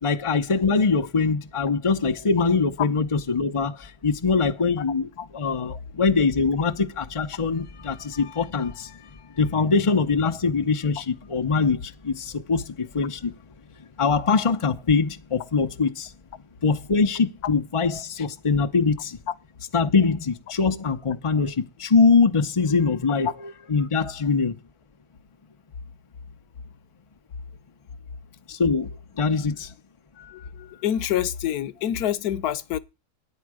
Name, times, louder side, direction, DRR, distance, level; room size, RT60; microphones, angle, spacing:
voice 1, 0.0-9.1 9.4-13.3 14.0-16.1 16.6-19.2 19.7-23.3 23.7-24.6 28.5-28.9 29.2-29.7, left 4 dB, 45° left, 0.4 m, -23 dB
voice 2, 30.2-32.8, left 11 dB, 65° left, 1.3 m, -27 dB
13.0 x 9.8 x 4.9 m
omnidirectional pair, 1.8 m